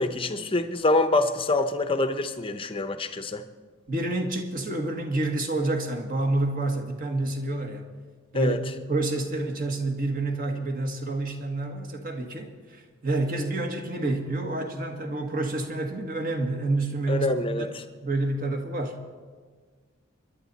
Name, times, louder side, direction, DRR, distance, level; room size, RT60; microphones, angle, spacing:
voice 1, 0.0-3.4 8.3-8.6 17.1-17.8, left 2 dB, 25° left, 9 dB, 0.7 m, -25 dB
voice 2, 3.9-7.9 8.3-17.3 17.6-17.7 18.0-19.0, right 2 dB, 40° right, 4 dB, 1.6 m, -28 dB
25.5 x 11.0 x 4.1 m, 1.5 s
head